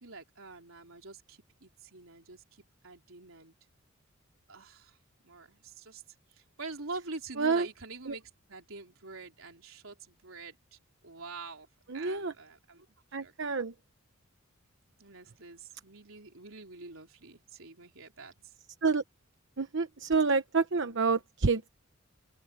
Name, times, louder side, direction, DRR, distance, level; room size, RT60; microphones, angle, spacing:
voice 1, 0.0-3.5 4.5-5.0 5.2-6.0 6.3-11.7 11.9-12.9 13.2-13.3 15.0-18.5, right 3 dB, 85° right, 3.6 m, -46 dB
voice 2, 11.9-12.3 13.1-13.7 18.8-19.0 19.6-21.7, right 4 dB, 65° right, 1.0 m, -28 dB
open air
head